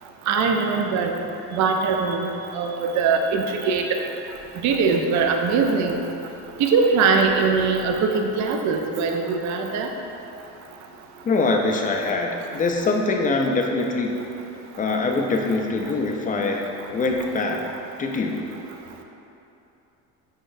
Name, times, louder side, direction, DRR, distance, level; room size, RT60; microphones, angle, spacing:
voice 1, 0.3-1.2 1.5-2.3 2.5-3.9 4.6-6.0 6.6-9.9, right 5 dB, 50° right, 3 dB, 0.5 m, -21 dB
voice 2, 11.2-14.1 14.8-17.7 18.0-18.5, left 3 dB, 25° left, 2 dB, 0.5 m, -23 dB
5.0 x 3.9 x 2.6 m, 2.9 s
supercardioid pair, 85°, 36 cm